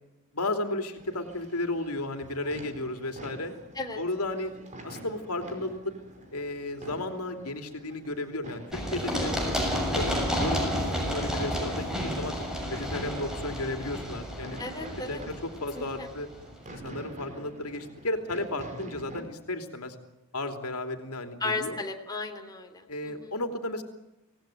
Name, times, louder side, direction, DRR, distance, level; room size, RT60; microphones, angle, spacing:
voice 1, 0.3-3.5 4.0-4.5 4.8-5.9 6.3-9.4 9.8-12.3 12.7-14.6 15.1-16.3 16.7-19.9 20.3-21.8 22.9-23.8, left 2 dB, 80° left, 6 dB, 3.1 m, -34 dB
sound 1, 1.0-19.2, right 1 dB, 35° right, 5.2 m, -47 dB
Run, 8.7-16.4, equal, 5° right, 6.9 m, -31 dB
voice 2, 14.6-15.2 15.7-16.1 21.4-23.3, left 3 dB, 20° left, 3 dB, 3.1 m, -35 dB
26.0 x 18.5 x 9.4 m, 0.98 s
head